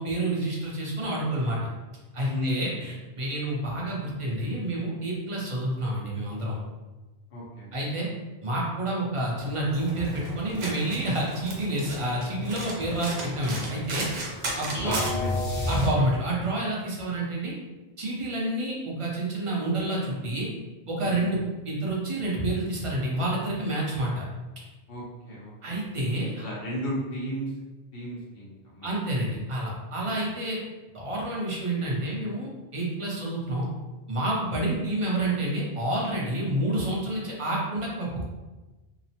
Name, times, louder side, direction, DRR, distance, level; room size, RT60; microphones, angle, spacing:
voice 1, 0.0-1.6 2.1-6.6 7.7-8.1 8.4-14.1 14.6-15.0 15.7-17.5 18.0-20.5 20.9-21.4 21.7-24.2 25.6-26.4 28.8-30.6 30.9-33.7 34.1-38.2, right 1 dB, 40° right, -4 dB, 0.6 m, -29 dB
voice 2, 2.3-2.9 7.3-7.7 14.8-15.5 21.0-21.3 24.9-25.8 26.2-27.5 27.9-29.0 30.0-30.1, equal, 65° left, -5 dB, 1.0 m, -34 dB
Domestic sounds home sounds, 9.4-15.4, right 1 dB, 85° right, 0.9 m, -36 dB
sound 1, 14.7-16.5, left 1 dB, 35° left, 0.8 m, -28 dB
2.9 x 2.0 x 2.7 m, 1.2 s
omnidirectional pair, 1.1 m